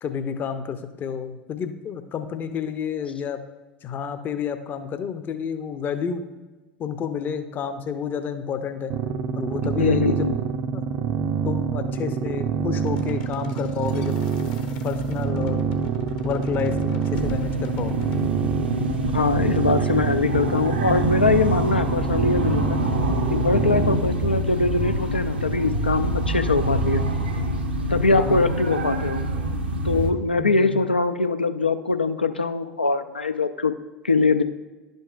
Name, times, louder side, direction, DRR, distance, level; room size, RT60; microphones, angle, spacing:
voice 1, 0.0-3.4 3.8-6.2 6.8-8.9 9.4-10.3 10.7-10.8 11.4-14.2 14.8-15.6 16.2-18.0 24.0-24.3 28.1-28.4 30.4-30.8, left 7 dB, 35° left, 9 dB, 0.6 m, -30 dB
sound 1, 8.9-24.0, right 6 dB, 40° right, 0.4 m, -26 dB
voice 2, 9.8-10.4 19.1-22.6 23.3-27.0 27.9-29.2 29.8-33.7 34.0-34.4, left 3 dB, 85° left, 9 dB, 0.4 m, -22 dB
sound 2, 12.7-18.2, left 7 dB, 55° left, 0.9 m, -42 dB
sound 3, 17.1-30.1, right 1 dB, 80° right, 0.7 m, -26 dB
11.0 x 5.2 x 2.4 m, 1.2 s
figure-of-eight pair, 70°, 5 cm